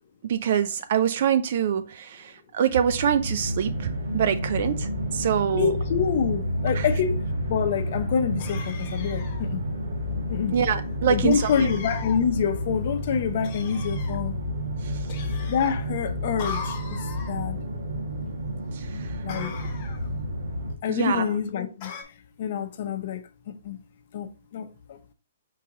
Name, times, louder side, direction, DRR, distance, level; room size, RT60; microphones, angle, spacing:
voice 1, 0.3-5.7 6.7-6.8 10.5-11.7 14.8-15.0 18.7-19.2 20.9-21.2, right 8 dB, 50° right, 0.3 m, -25 dB
sound 1, 2.8-20.8, equal, 80° right, 1.3 m, -30 dB
voice 2, 5.5-7.2 7.5-9.6 10.3-10.5 11.1-14.4 15.5-16.8 17.3-17.6 18.9-19.6 20.8-21.9 22.4-23.2 23.6-23.8 24.1-25.0, left 7 dB, 50° left, 0.7 m, -27 dB
sound 2, 8.4-9.4 11.3-12.2 13.4-14.2 15.1-15.8 16.4-17.4 19.3-20.1 21.8-22.0, left 5 dB, 35° left, 1.0 m, -39 dB
4.6 x 3.0 x 3.6 m
hypercardioid pair, 155°, 0 cm